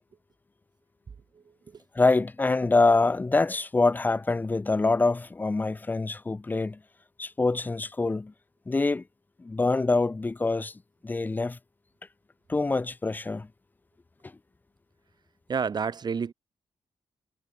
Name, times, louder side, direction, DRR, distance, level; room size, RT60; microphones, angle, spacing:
voice 1, 1.3-1.8 15.5-16.3, right 6 dB, 40° right, 0.5 m, -30 dB
voice 2, 1.9-6.8 7.2-8.3 8.7-9.0 9.4-10.7 11.0-11.6 12.5-13.5 14.2-14.3, left 3 dB, 15° left, 0.4 m, -25 dB
cardioid pair, 75°, 11 cm